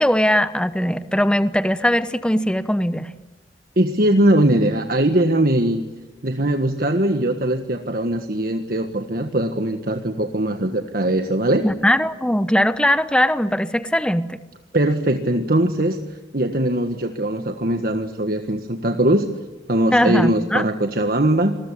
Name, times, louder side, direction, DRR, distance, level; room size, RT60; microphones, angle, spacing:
voice 1, 0.0-3.1 11.6-14.4 19.9-20.6, equal, 5° left, 12 dB, 0.9 m, -20 dB
voice 2, 3.8-5.8 6.2-11.7 14.7-19.3 19.7-21.5, right 1 dB, 55° right, 6 dB, 1.6 m, -20 dB
27.0 x 21.5 x 9.9 m, 1.1 s
head